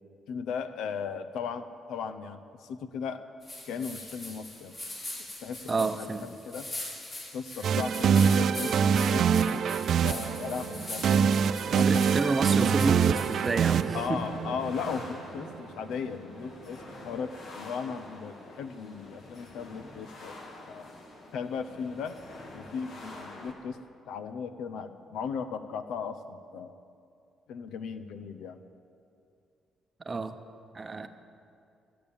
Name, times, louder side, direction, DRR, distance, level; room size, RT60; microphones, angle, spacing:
voice 1, 0.3-3.2 3.7-4.7 5.4-5.7 6.0-6.7 7.3-9.6 10.0-11.3 11.7-12.2 12.8-12.9 13.9-20.3 20.7-20.9 21.3-22.2 22.5-23.8 24.1-26.7 27.5-28.6, left 6 dB, 80° left, 10 dB, 0.7 m, -37 dB
sound 1, 3.4-13.9, left 1 dB, 35° left, 4.0 m, -42 dB
voice 2, 5.7-6.3 11.7-14.2 30.0-30.4 30.7-31.1, right 3 dB, 30° right, 9 dB, 0.8 m, -30 dB
sound 2, 7.6-15.6, right 7 dB, 65° right, 0.3 m, -25 dB
sound 3, 11.0-23.5, left 2 dB, 60° left, 2.0 m, -46 dB
14.0 x 8.6 x 7.1 m, 2.5 s
cardioid pair, 90°, 0 cm